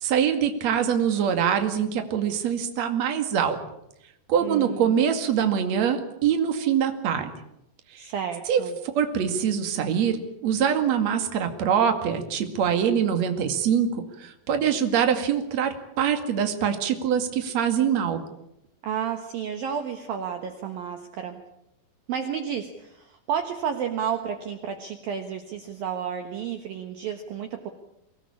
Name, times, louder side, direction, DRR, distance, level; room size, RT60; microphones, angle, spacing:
voice 1, 0.0-3.6 4.3-7.3 7.9-8.1 8.5-8.6 8.9-10.2 10.4-13.9 14.2-18.2, right 8 dB, 45° right, 6 dB, 2.8 m, -24 dB
voice 2, 4.4-5.0 8.0-8.7 18.8-21.4 22.1-27.7, right 8 dB, 65° right, 6 dB, 2.8 m, -31 dB
24.0 x 18.5 x 8.6 m, 0.81 s
omnidirectional pair, 5.2 m